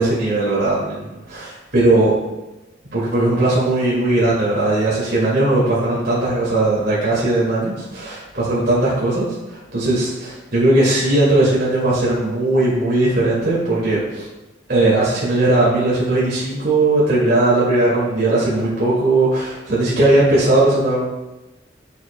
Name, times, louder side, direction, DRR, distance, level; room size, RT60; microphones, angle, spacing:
voice 1, 0.0-2.2 2.9-14.3 14.7-21.0, right 2 dB, 60° right, -8 dB, 2.2 m, -18 dB
8.3 x 7.1 x 2.2 m, 1.0 s
head